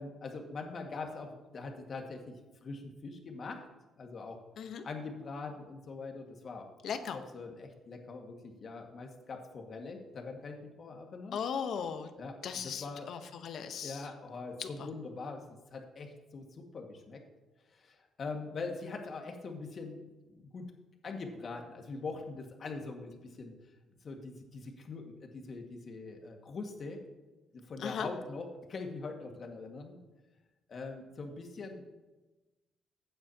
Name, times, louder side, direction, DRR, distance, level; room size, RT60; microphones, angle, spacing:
voice 1, 0.0-2.4 2.6-3.6 4.0-4.4 4.8-11.4 12.2-13.1 13.8-17.2 17.7-20.0 20.3-20.7 21.0-23.6 24.0-27.0 27.5-30.0 30.7-31.8, left 3 dB, 50° left, 2 dB, 1.9 m, -43 dB
voice 2, 6.8-7.2 11.3-12.1 12.4-14.0 14.6-14.7 27.8-28.1, left 7 dB, 70° left, 8 dB, 1.0 m, -37 dB
15.5 x 8.8 x 2.9 m, 1.1 s
cardioid pair, 90°, 0 cm